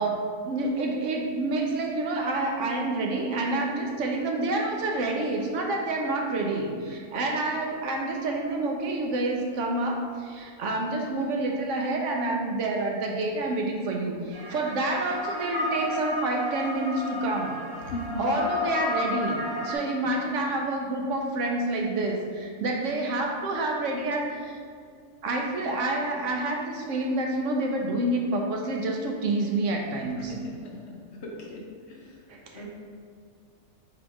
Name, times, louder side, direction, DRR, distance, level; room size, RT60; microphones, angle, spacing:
voice 1, 0.0-17.6 18.2-24.6 25.2-30.4 32.3-32.6, right 2 dB, 65° right, 1 dB, 0.8 m, -28 dB
sound 1, 14.3-19.8, left 2 dB, 45° right, 1.9 m, -32 dB
voice 2, 17.9-18.4 30.3-31.0 31.2-31.6 31.9-32.0 32.6-32.7, left 1 dB, 60° left, -2 dB, 0.9 m, -36 dB
3.8 x 2.9 x 4.7 m, 2.1 s
omnidirectional pair, 1.5 m